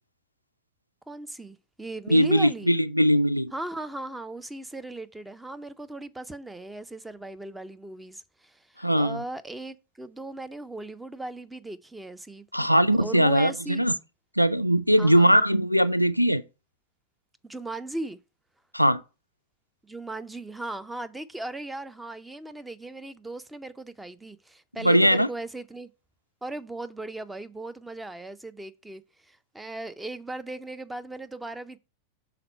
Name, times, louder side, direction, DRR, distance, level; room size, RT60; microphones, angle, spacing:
voice 1, 1.1-2.8 3.5-12.5 13.0-13.8 15.0-15.3 17.4-18.2 19.8-25.9 26.4-31.8, right 2 dB, 5° right, 0.4 m, -37 dB
voice 2, 2.1-3.5 8.8-9.2 12.5-13.9 14.4-16.4 18.7-19.0 24.8-25.3, equal, 90° left, 0.3 m, -20 dB
5.8 x 3.8 x 5.4 m
figure-of-eight pair, 90°, 0 cm